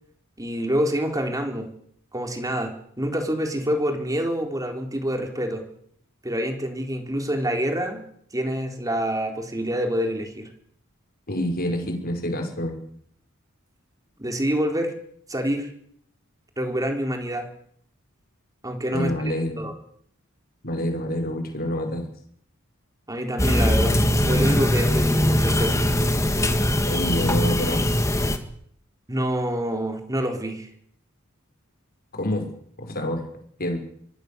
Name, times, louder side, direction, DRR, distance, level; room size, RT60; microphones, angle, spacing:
voice 1, 0.4-1.7 2.1-5.6 6.2-8.0 8.3-10.5 14.2-14.9 15.3-15.7 16.6-17.5 18.6-19.7 23.1-24.0 24.3-25.9 29.1-30.7, equal, 15° right, 4 dB, 4.0 m, -26 dB
voice 2, 11.3-12.8 18.9-19.7 20.6-22.1 26.9-27.9 32.1-32.5 32.8-33.3 33.6-33.8, left 1 dB, 45° left, 5 dB, 5.6 m, -27 dB
sound 1, 23.4-28.4, left 1 dB, 15° left, 2.1 m, -21 dB
24.5 x 19.0 x 7.0 m, 0.65 s
head